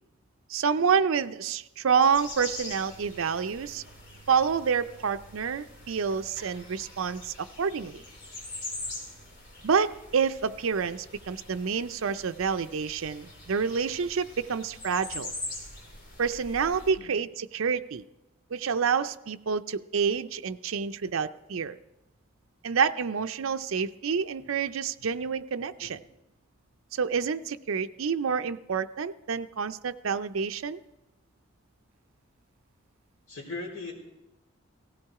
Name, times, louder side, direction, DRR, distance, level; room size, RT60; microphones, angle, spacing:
voice 1, 0.5-3.8 4.3-8.0 9.6-15.3 16.2-18.0 18.5-21.8 22.6-26.0 26.9-30.8, right 6 dB, 75° right, 10 dB, 0.5 m, -28 dB
sound 1, 2.0-16.9, left 2 dB, 55° left, 3.9 m, -43 dB
voice 2, 33.3-33.9, left 3 dB, 75° left, -1 dB, 3.8 m, -39 dB
17.0 x 15.5 x 4.8 m, 0.96 s
head